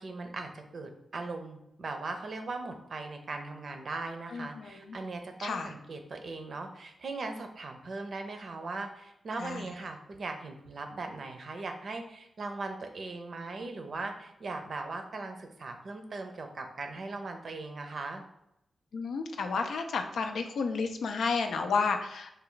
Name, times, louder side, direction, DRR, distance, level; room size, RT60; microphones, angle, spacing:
voice 1, 0.0-18.2, right 3 dB, 65° right, 5 dB, 0.5 m, -39 dB
voice 2, 4.3-5.0 5.4-5.7 9.4-9.7 18.9-22.3, left 4 dB, 80° left, 6 dB, 0.4 m, -31 dB
3.3 x 2.2 x 3.8 m, 0.81 s
cardioid pair, 55°, 0 cm